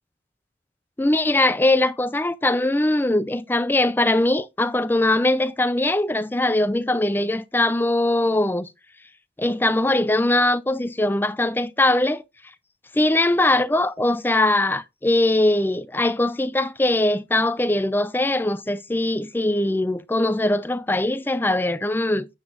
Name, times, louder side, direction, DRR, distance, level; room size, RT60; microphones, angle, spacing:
voice 1, 1.0-8.7 9.4-12.2 12.9-22.3, left 1 dB, 10° left, 0.4 m, -21 dB
9.3 x 8.0 x 2.5 m
head